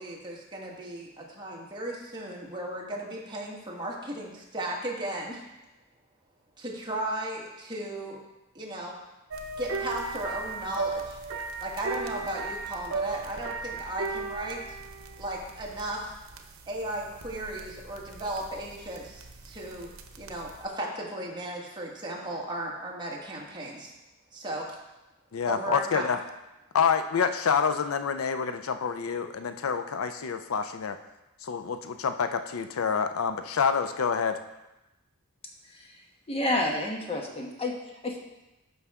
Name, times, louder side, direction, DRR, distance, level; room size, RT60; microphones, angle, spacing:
voice 1, 0.0-5.4 6.6-8.2 8.6-8.9 9.6-11.2 11.6-14.8 15.2-16.1 16.7-19.9 20.2-23.9 24.3-24.7 25.4-26.1, right 1 dB, 20° right, -3 dB, 1.6 m, -35 dB
sound 1, 9.3-20.6, right 4 dB, 75° right, 0.9 m, -37 dB
voice 2, 25.3-26.2 26.7-31.0 31.4-34.4, left 6 dB, 85° left, 9 dB, 0.5 m, -27 dB
voice 3, 36.3-37.7 38.0-38.2, left 1 dB, 30° left, 0 dB, 1.2 m, -29 dB
12.5 x 5.5 x 3.6 m, 1.0 s
head